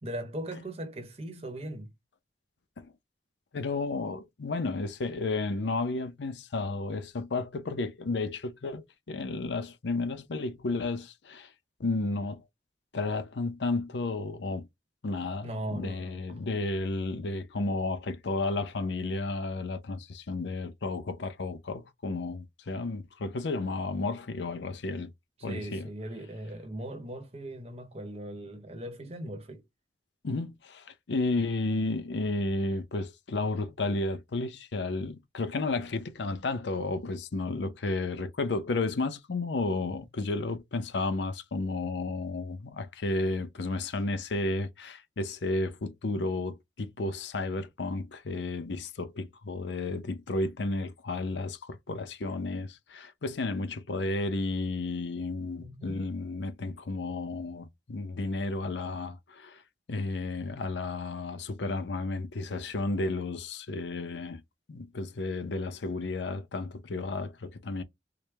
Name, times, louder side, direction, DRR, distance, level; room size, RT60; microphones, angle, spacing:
voice 1, 0.0-1.9 15.4-16.2 25.4-29.6 55.6-56.0, right 1 dB, 35° right, 1.0 m, -39 dB
voice 2, 3.5-11.5 11.8-12.4 12.9-14.7 15.0-25.1 25.4-25.9 30.2-59.6 59.9-64.4 64.7-67.8, left 3 dB, 75° left, 0.6 m, -32 dB
4.8 x 2.1 x 3.3 m
head